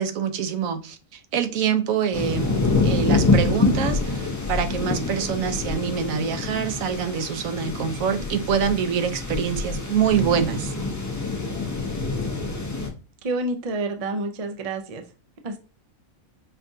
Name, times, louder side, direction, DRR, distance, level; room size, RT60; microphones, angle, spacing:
voice 1, 0.0-2.6 2.8-10.7, right 7 dB, 75° right, 1.0 m, -25 dB
sound 1, 2.1-12.9, left 3 dB, 20° left, 0.5 m, -26 dB
voice 2, 13.2-15.0 15.4-15.6, right 2 dB, 50° right, 0.4 m, -28 dB
5.7 x 2.4 x 2.6 m
omnidirectional pair, 1.4 m